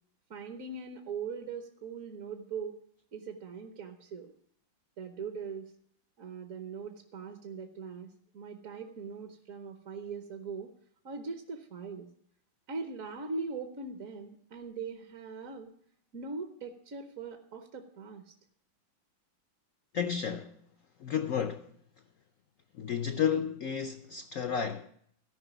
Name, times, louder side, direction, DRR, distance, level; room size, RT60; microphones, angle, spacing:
voice 1, 0.3-2.8 3.1-4.3 5.0-5.7 6.2-10.7 11.0-12.1 12.7-15.7 16.1-18.3, right 5 dB, 55° right, 1.2 m, -41 dB
voice 2, 19.9-20.6 21.0-21.7 22.7-24.9, left 7 dB, 70° left, 0.8 m, -32 dB
14.0 x 5.4 x 9.1 m
omnidirectional pair, 2.1 m